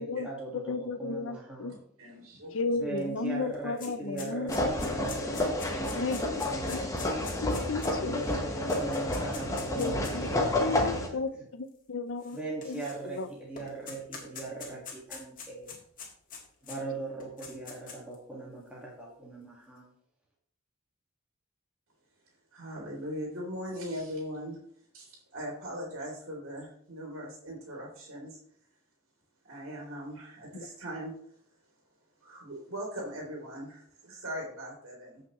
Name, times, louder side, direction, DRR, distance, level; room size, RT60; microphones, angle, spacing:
voice 1, 0.0-1.8 2.7-7.1 8.0-11.4 12.3-15.7 16.6-19.9, right 3 dB, 5° right, -5 dB, 1.9 m, -40 dB
voice 2, 0.7-1.7 2.5-4.7 6.0-6.9 7.4-8.2 9.7-10.3 10.6-12.4 12.7-12.8 13.1-13.3, left 3 dB, 65° left, 9 dB, 0.6 m, -34 dB
voice 3, 1.7-2.7 22.5-24.6 24.9-28.4 29.4-31.1 32.2-35.2, equal, 70° right, -2 dB, 3.2 m, -40 dB
sound 1, 3.0-3.1 3.3-10.3 11.0-11.1 12.2-13.2 13.6-16.8 17.2-18.1, left 5 dB, 40° left, 1.9 m, -44 dB
sound 2, 4.5-11.1, left 1 dB, 15° left, 1.2 m, -30 dB
15.0 x 5.8 x 3.1 m, 0.64 s
head